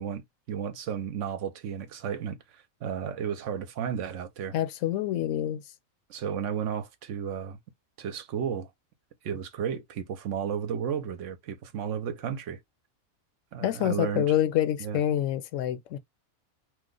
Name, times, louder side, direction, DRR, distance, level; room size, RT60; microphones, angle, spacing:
voice 1, 0.0-4.5 6.1-7.6 8.0-8.7 9.2-12.6 13.5-14.3 14.8-15.0, right 8 dB, 70° right, 0.9 m, -33 dB
voice 2, 4.5-5.6 13.6-16.0, left 11 dB, 70° left, 0.9 m, -27 dB
3.0 x 2.1 x 3.7 m
omnidirectional pair, 1.4 m